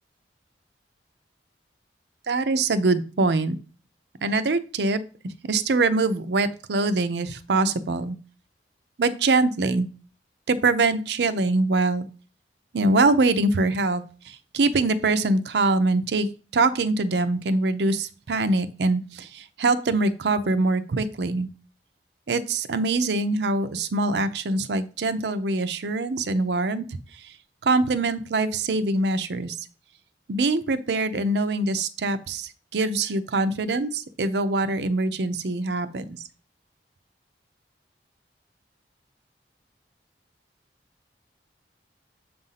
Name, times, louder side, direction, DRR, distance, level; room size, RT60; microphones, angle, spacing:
voice 1, 2.3-3.6 4.2-8.2 9.0-9.9 10.5-12.1 12.7-21.5 22.3-27.0 27.6-29.6 30.3-36.2, right 3 dB, 75° right, 11 dB, 0.5 m, -24 dB
7.2 x 2.6 x 5.7 m, 0.37 s
head